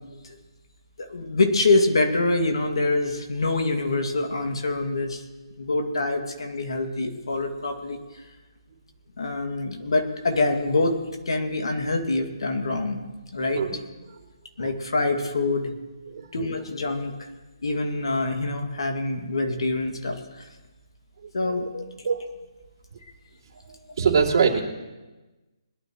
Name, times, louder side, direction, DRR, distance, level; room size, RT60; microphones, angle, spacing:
voice 1, 1.0-5.2 5.6-8.0 9.2-11.0 11.3-13.0 13.3-13.6 14.6-15.7 16.3-17.3 17.6-20.5 21.3-21.8, left 2 dB, 70° left, 3 dB, 2.2 m, -25 dB
voice 2, 21.2-21.5 22.0-22.2 23.7-24.6, right 6 dB, 50° right, -4 dB, 2.8 m, -23 dB
22.0 x 12.0 x 3.1 m, 1.1 s
hypercardioid pair, 150°, 3 cm